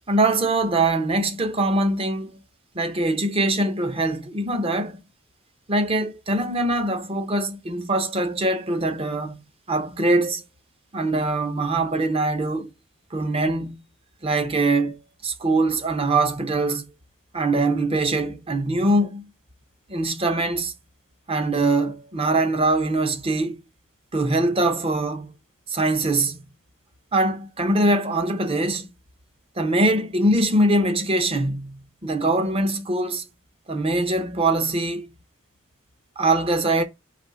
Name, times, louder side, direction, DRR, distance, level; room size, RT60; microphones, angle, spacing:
voice 1, 0.1-2.3 2.7-5.0 5.7-10.4 10.9-12.7 13.1-13.8 14.2-16.9 17.3-19.2 19.9-20.7 21.3-23.6 24.1-25.3 25.7-26.4 27.1-28.9 29.6-33.2 33.7-35.1 36.2-36.8, right 2 dB, 30° right, 0.7 m, -23 dB
4.1 x 2.7 x 4.4 m
head